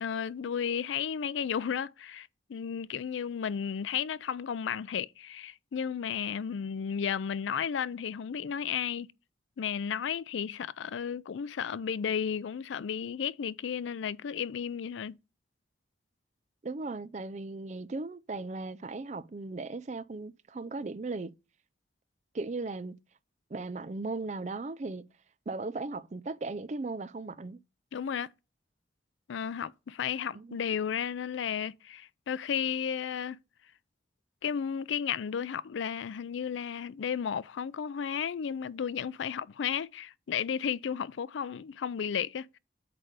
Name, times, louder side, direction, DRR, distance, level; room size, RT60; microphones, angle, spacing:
voice 1, 0.0-9.1 9.6-15.2 27.9-28.3 29.3-33.4 34.4-42.6, left 7 dB, 85° left, 0.4 m, -33 dB
voice 2, 16.6-21.3 22.3-23.0 23.5-25.1 25.5-27.6 30.3-30.6, right 3 dB, 40° right, 0.4 m, -37 dB
8.3 x 3.3 x 5.0 m
head